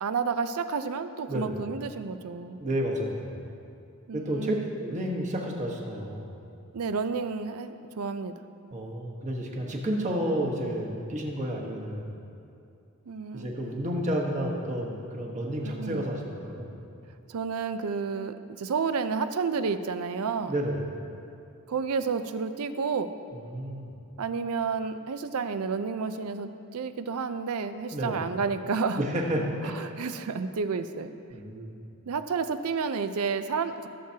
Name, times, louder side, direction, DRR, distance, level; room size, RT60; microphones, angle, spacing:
voice 1, 0.0-2.6 4.1-4.7 6.7-8.3 13.1-13.5 15.6-16.0 17.3-20.5 21.7-23.1 24.2-29.0 29.8-31.1 31.6-31.7 32.1-33.9, right 5 dB, 80° right, 11 dB, 0.5 m, -30 dB
voice 2, 2.6-3.3 4.1-6.4 8.7-12.2 13.3-16.7 20.5-21.0 23.3-23.9 27.9-28.2 29.0-29.7 31.3-31.8, equal, 35° right, -1 dB, 1.2 m, -31 dB
17.0 x 7.5 x 2.8 m, 2.6 s
head